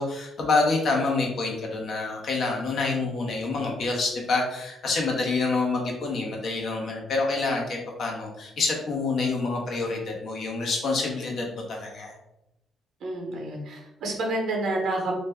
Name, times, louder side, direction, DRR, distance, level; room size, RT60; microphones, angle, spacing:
voice 1, 0.0-12.1, left 3 dB, 60° left, 0 dB, 0.8 m, -27 dB
voice 2, 13.0-15.2, right 2 dB, 70° right, 0 dB, 0.8 m, -29 dB
2.6 x 2.1 x 3.4 m, 0.91 s
cardioid pair, 90°, 0 cm